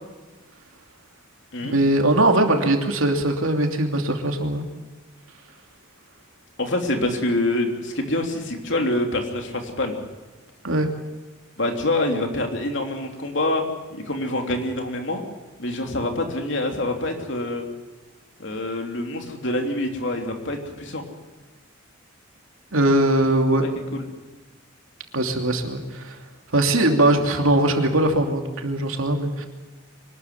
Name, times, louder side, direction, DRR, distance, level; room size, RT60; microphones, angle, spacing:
voice 1, 1.6-4.6 10.6-10.9 22.7-23.6 25.1-26.1 26.5-29.5, right 1 dB, 75° right, 4 dB, 2.9 m, -20 dB
voice 2, 6.6-10.0 11.6-13.6 13.9-15.2 15.6-17.6 18.4-21.0 23.6-23.7 24.0-24.1, left 1 dB, 55° left, 3 dB, 3.2 m, -26 dB
24.5 x 13.0 x 9.5 m, 1.2 s
head